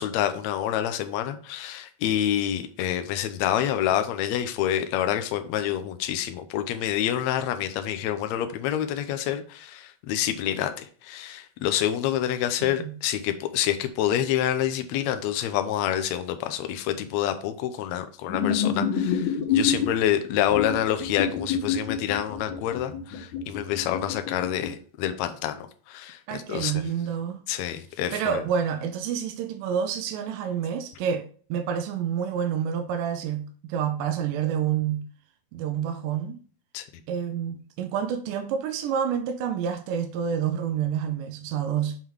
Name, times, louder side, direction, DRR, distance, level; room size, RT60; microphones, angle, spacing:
voice 1, 0.0-26.7 27.5-28.4 36.7-36.8, left 11 dB, 85° left, 1.6 m, -27 dB
voice 2, 12.6-13.0 26.3-27.4 28.1-35.1 35.5-36.4 37.1-42.0, right 8 dB, 85° right, 2.2 m, -28 dB
sound 1, 18.3-19.9 20.5-24.7, left 7 dB, 65° left, 2.5 m, -27 dB
6.9 x 3.8 x 4.6 m
omnidirectional pair, 3.9 m